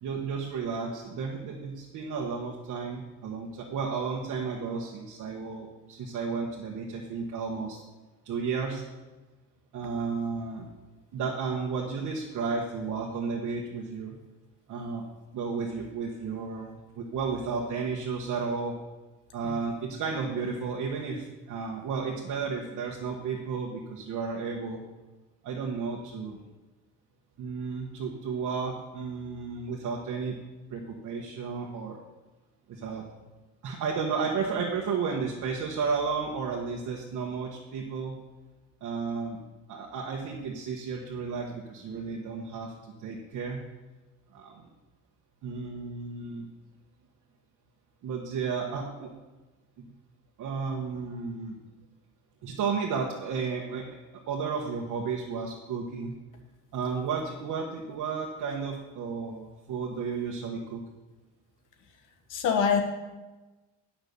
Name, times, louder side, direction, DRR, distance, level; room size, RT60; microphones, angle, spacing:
voice 1, 0.0-7.8 8.2-8.8 9.7-10.7 11.1-14.2 14.7-15.0 15.3-18.7 19.3-24.8 25.4-26.4 27.4-30.4 30.7-32.0 32.7-33.0 33.6-38.2 38.8-39.4 39.7-43.6 44.3-44.7 45.4-46.5 48.0-49.1 49.8-49.9 50.4-51.6 52.4-53.9 54.3-56.1 56.7-60.8, right 5 dB, 75° right, -1 dB, 1.5 m, -33 dB
voice 2, 62.3-62.8, left 7 dB, 90° left, 4 dB, 1.6 m, -24 dB
11.5 x 5.9 x 6.9 m, 1.1 s
cardioid pair, 90°, 30 cm